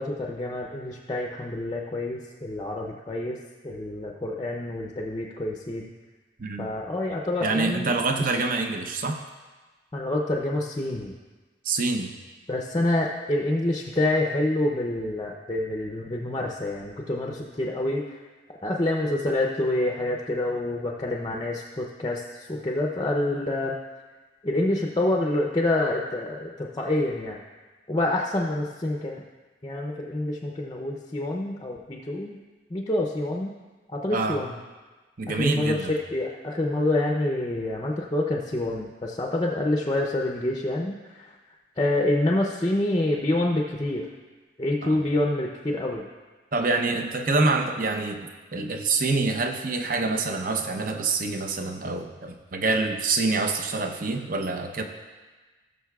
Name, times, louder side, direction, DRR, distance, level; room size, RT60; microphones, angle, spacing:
voice 1, 0.0-3.4 3.6-5.9 6.6-8.4 9.9-11.1 12.5-18.2 18.6-23.7 24.4-27.4 27.9-29.2 29.6-32.4 32.7-33.5 33.9-34.6 35.3-35.8 36.1-41.4 41.8-44.1 44.6-46.0, left 1 dB, 20° left, 0 dB, 0.5 m, -27 dB
voice 2, 7.4-9.2 11.6-12.1 34.1-34.4 35.2-35.9 44.8-45.0 46.5-54.8, right 3 dB, 45° right, 5 dB, 0.7 m, -26 dB
18.0 x 6.5 x 2.3 m, 1.3 s
head